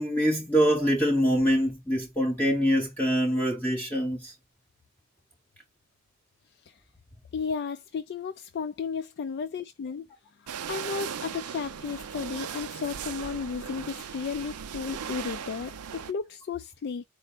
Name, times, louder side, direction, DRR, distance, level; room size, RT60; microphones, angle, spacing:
voice 1, 0.0-4.3, equal, 5° left, 0.7 m, -24 dB
voice 2, 7.3-10.1 10.7-17.0, left 5 dB, 50° left, 0.3 m, -34 dB
sound 1, 10.5-16.1, right 7 dB, 80° right, 0.5 m, -38 dB
4.4 x 2.1 x 4.1 m
head